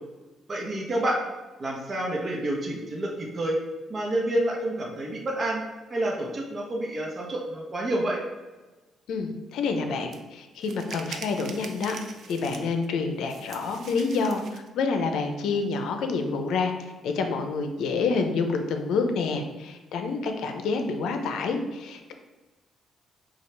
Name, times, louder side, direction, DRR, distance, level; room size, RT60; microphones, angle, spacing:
voice 1, 0.5-1.2 1.6-3.6 3.9-5.6 5.9-8.2, right 1 dB, 35° right, -1 dB, 0.9 m, -28 dB
voice 2, 9.1-12.0 12.3-16.7 17.0-22.1, left 4 dB, 80° left, 5 dB, 0.5 m, -28 dB
sound 1, 10.1-10.2 10.6-12.9 13.3-14.7, right 5 dB, 60° right, 0.5 m, -42 dB
5.5 x 2.4 x 3.3 m, 1.2 s
cardioid pair, 90°, 0 cm